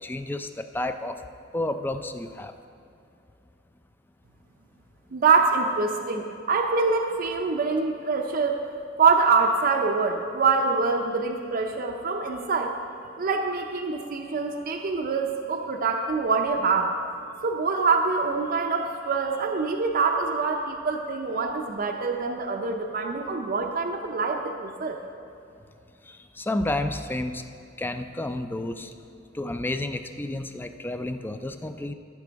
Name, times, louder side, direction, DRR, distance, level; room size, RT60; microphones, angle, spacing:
voice 1, 0.0-1.2 1.5-2.5 26.1-27.4 27.8-28.9 29.3-31.9, left 1 dB, 10° left, 8 dB, 0.3 m, -31 dB
voice 2, 5.1-8.6 9.0-12.8 13.2-17.0 17.4-25.0, right 4 dB, 45° right, 2 dB, 0.5 m, -25 dB
14.5 x 6.0 x 4.6 m, 2.5 s
head